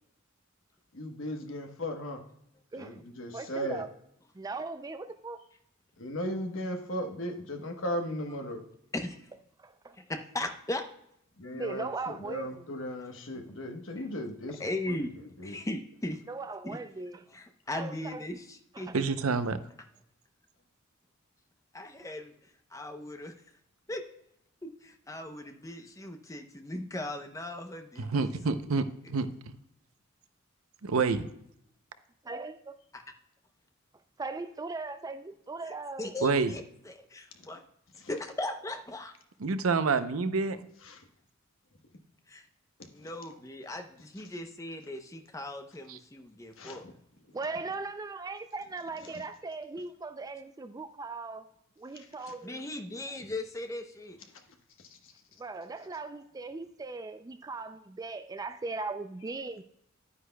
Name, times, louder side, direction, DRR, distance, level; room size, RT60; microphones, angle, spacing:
voice 1, 0.9-2.2 2.8-3.9 6.0-8.6 11.4-15.0 15.4-15.6 38.0-38.1 40.9-41.0 43.0-43.1 46.6-46.9 49.0-49.2 51.9-52.3, equal, 65° left, 1.2 m, -37 dB
voice 2, 3.3-3.9 4.4-5.4 9.6-10.0 11.5-12.6 16.3-17.2 17.7-18.2 18.7-18.9 32.2-32.8 34.2-36.1 47.3-51.5 51.8-52.6 55.4-59.6, right 3 dB, 20° right, 0.3 m, -39 dB
voice 3, 10.0-10.8 14.0-14.1 14.6-15.1 15.4-16.2 16.6-16.8 17.3-19.0 21.7-22.3 22.7-23.3 23.9-24.0 24.6-28.2 32.9-33.0 35.6-37.6 38.1-39.1 42.3-42.5 42.9-46.8 52.4-54.2, left 1 dB, 15° left, 0.7 m, -38 dB
voice 4, 18.9-19.6 28.0-29.6 30.8-31.3 36.2-36.5 39.4-40.6 45.9-46.0, right 4 dB, 85° right, 0.6 m, -28 dB
10.0 x 9.5 x 2.2 m
head